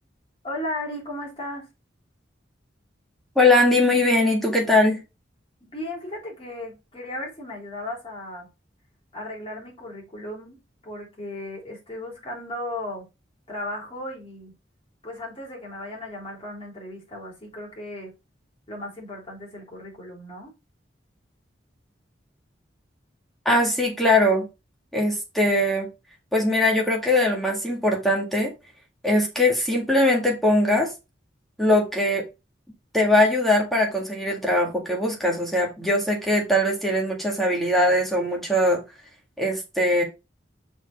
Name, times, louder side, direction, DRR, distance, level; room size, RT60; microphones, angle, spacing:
voice 1, 0.4-1.7 5.6-8.5 9.1-10.6 10.8-13.1 13.5-14.5 15.0-18.1 18.7-20.5, left 1 dB, 30° left, 3.8 m, -35 dB
voice 2, 3.4-5.0 23.5-24.5 24.9-25.9 26.3-28.5 29.0-30.9 31.6-32.2 32.9-38.8 39.4-40.0, left 1 dB, ahead, 1.8 m, -21 dB
6.1 x 4.6 x 4.4 m
head